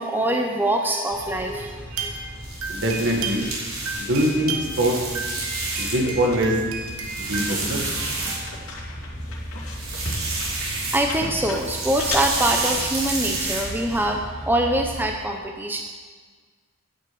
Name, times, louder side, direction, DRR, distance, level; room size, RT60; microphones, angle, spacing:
voice 1, 0.0-2.1 10.6-15.8, right 1 dB, 10° right, 2 dB, 0.6 m, -24 dB
sound 1, 1.1-15.1, left 1 dB, 80° left, 2.5 m, -36 dB
sound 2, 1.9-3.6 3.9-8.9 9.8-9.9 10.2-10.3, right 4 dB, 90° right, 1.4 m, -34 dB
sound 3, 2.4-6.2 6.6-8.8 9.6-11.2 11.5-14.0, right 3 dB, 75° right, 3.3 m, -30 dB
voice 2, 2.7-3.5 4.0-4.9 5.8-6.5 7.2-7.8, right 1 dB, 60° right, 0 dB, 1.8 m, -23 dB
10.0 x 6.4 x 7.8 m, 1.5 s
head